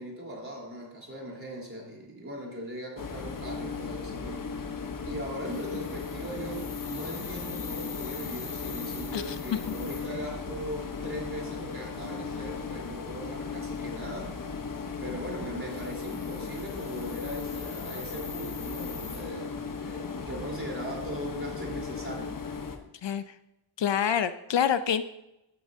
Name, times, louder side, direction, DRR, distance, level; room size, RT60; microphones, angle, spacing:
voice 1, 0.0-4.5 5.0-14.5 15.0-22.6, equal, 25° right, -2 dB, 3.7 m, -39 dB
sound 1, 3.0-22.8, left 5 dB, 45° left, 1.1 m, -36 dB
voice 2, 23.0-23.3 23.8-25.0, left 8 dB, 65° left, 12 dB, 0.6 m, -27 dB
15.5 x 9.6 x 2.8 m, 0.89 s
wide cardioid pair, 135°, 47 cm